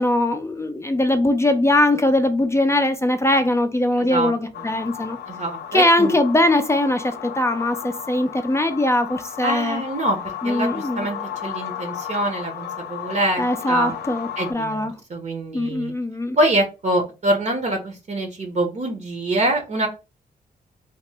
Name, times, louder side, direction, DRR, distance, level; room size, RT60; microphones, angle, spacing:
voice 1, 0.0-5.2 5.7-9.8 10.4-11.0 13.4-14.9 15.5-16.4, left 1 dB, 15° left, 0.4 m, -21 dB
voice 2, 4.0-4.7 5.3-6.1 9.4-10.2 10.4-13.9 14.4-15.9 16.4-19.9, right 1 dB, 45° right, 0.7 m, -25 dB
sound 1, 4.5-14.5, left 9 dB, 85° left, 0.5 m, -34 dB
2.8 x 2.1 x 3.3 m
cardioid pair, 80°, 16 cm